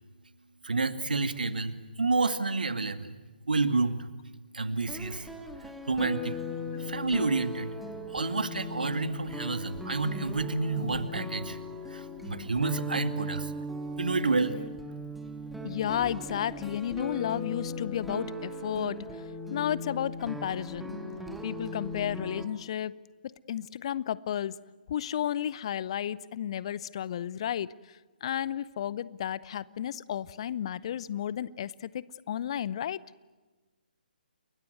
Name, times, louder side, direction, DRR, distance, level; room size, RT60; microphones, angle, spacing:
voice 1, 0.6-3.2 3.5-4.1 4.5-5.3 5.6-6.4 6.8-7.8 8.1-11.6 11.9-13.5 14.0-14.6, right 3 dB, 65° right, 10 dB, 2.1 m, -29 dB
sound 1, 4.8-22.5, left 1 dB, ahead, 1.8 m, -38 dB
voice 2, 15.6-19.2 19.5-21.0 21.4-22.9 23.2-24.6 24.9-33.0, left 10 dB, 35° left, 21 dB, 0.7 m, -33 dB
29.5 x 21.0 x 8.0 m, 1.3 s
figure-of-eight pair, 135°, 5 cm